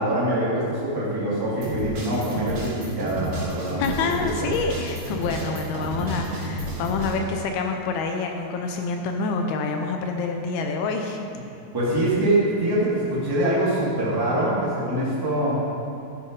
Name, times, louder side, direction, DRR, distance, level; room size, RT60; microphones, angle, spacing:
voice 1, 0.0-4.1 4.4-4.5 11.7-15.6, right 1 dB, 10° right, -8 dB, 1.4 m, -24 dB
sound 1, 1.6-7.1, right 1 dB, 65° right, 4.4 m, -31 dB
voice 2, 3.8-11.3, left 4 dB, 75° left, 4 dB, 2.4 m, -27 dB
13.0 x 6.9 x 5.3 m, 2.6 s
omnidirectional pair, 4.9 m